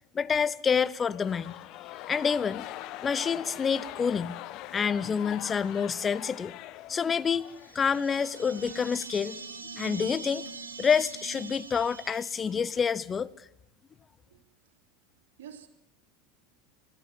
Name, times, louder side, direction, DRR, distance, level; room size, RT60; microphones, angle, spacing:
voice 1, 0.1-1.6 2.1-2.7 3.0-4.4 4.7-6.5 6.9-7.5 7.7-9.4 9.7-10.4 10.8-13.3, left 6 dB, 25° left, 0.7 m, -27 dB
sound 1, 1.0-9.5, left 15 dB, 50° left, 1.1 m, -43 dB
sound 2, 7.4-12.8, right 5 dB, 85° right, 2.7 m, -43 dB
voice 2, 14.3-14.8 15.4-15.7, right 9 dB, 65° right, 3.1 m, -49 dB
20.0 x 16.0 x 8.9 m
figure-of-eight pair, 80°, 0 cm